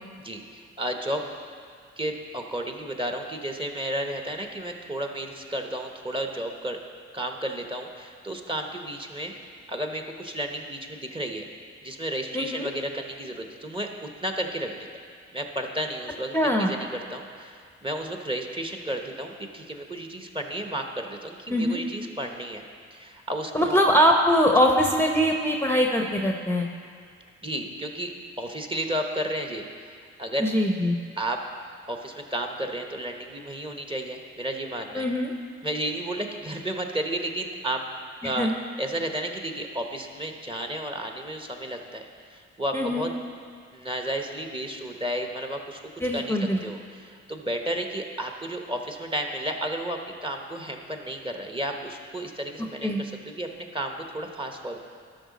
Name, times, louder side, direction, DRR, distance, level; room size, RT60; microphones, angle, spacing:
voice 1, 0.2-1.2 2.0-6.8 7.1-9.3 9.7-11.4 11.8-14.8 15.3-22.6 22.9-23.8 27.4-28.1 28.4-29.6 30.2-30.5 31.2-31.4 31.9-35.0 35.6-37.8 38.2-38.5 38.8-43.1 43.7-45.8 46.1-54.8, right 1 dB, 15° right, 4 dB, 1.1 m, -32 dB
voice 2, 12.3-12.7 16.3-16.7 21.5-21.8 23.5-26.7 30.4-31.0 34.9-35.3 38.2-38.5 42.7-43.0 46.0-46.6 52.8-53.0, equal, 5° left, 1 dB, 0.9 m, -22 dB
12.5 x 5.8 x 4.2 m, 2.1 s
supercardioid pair, 45°, 32 cm